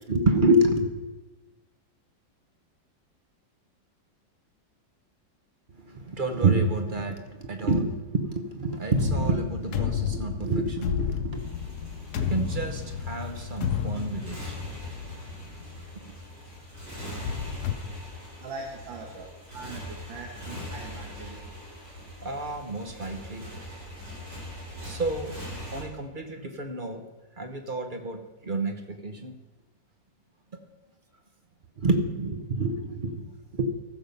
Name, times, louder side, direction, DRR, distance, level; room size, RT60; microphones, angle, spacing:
voice 1, 0.1-0.9 5.9-11.4 12.2-14.4 22.2-23.4 24.8-25.3 25.7-27.0 27.4-28.2 28.4-29.3 31.8-33.6, right 2 dB, 40° right, 6 dB, 0.8 m, -28 dB
sound 1, 8.9-15.9 16.4-16.5 17.0-17.7, left 8 dB, 65° left, 1.1 m, -32 dB
Motorcycle, 11.3-25.8, left 1 dB, 65° right, 5.0 m, -42 dB
voice 2, 18.4-19.3 19.5-21.4, right 3 dB, 80° right, 1 dB, 2.0 m, -41 dB
14.5 x 7.0 x 5.4 m, 1.2 s
omnidirectional pair, 2.1 m